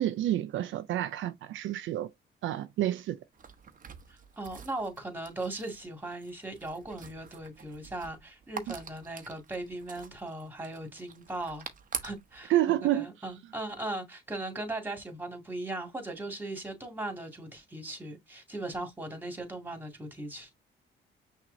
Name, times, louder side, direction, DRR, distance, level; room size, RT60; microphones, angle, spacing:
voice 1, 0.0-2.1 2.4-3.2 12.5-13.1, right 13 dB, 75° right, 0.5 m, -28 dB
sound 1, 3.3-12.4, right 6 dB, 45° right, 0.9 m, -45 dB
voice 2, 4.1-11.7 12.0-20.5, right 2 dB, 10° right, 2.0 m, -38 dB
6.0 x 2.9 x 2.6 m
cardioid pair, 90°, 20 cm